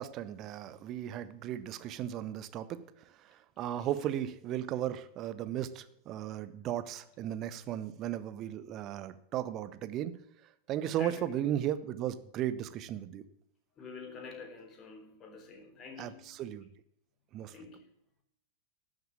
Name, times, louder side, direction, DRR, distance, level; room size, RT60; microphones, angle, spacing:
voice 1, 0.0-2.8 3.2-10.1 10.7-13.2 16.0-16.7 17.3-17.5, right 11 dB, 35° right, 13 dB, 1.0 m, -36 dB
voice 2, 3.8-4.1 11.0-11.3 13.8-16.4 17.5-17.9, left 4 dB, 30° left, 4 dB, 3.8 m, -47 dB
13.0 x 7.9 x 8.8 m, 0.75 s
figure-of-eight pair, 90°, 0 cm